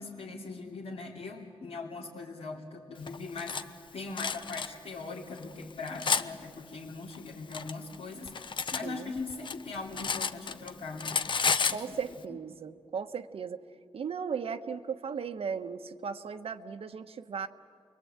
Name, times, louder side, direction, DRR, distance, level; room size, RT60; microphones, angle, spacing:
voice 1, 0.0-3.6 3.9-11.3 11.7-11.8 12.3-12.4, left 3 dB, 80° left, -5 dB, 2.9 m, -40 dB
Cutlery silverware, 3.1-3.6 4.2-4.7 5.4-6.3 7.1-8.8 9.2-10.7 11.0-11.8, left 5 dB, 55° left, 0.8 m, -31 dB
voice 2, 11.7-13.6 13.9-17.5, right 6 dB, 80° right, 6 dB, 1.1 m, -36 dB
29.0 x 22.5 x 8.8 m, 2.3 s
wide cardioid pair, 170°, 10 cm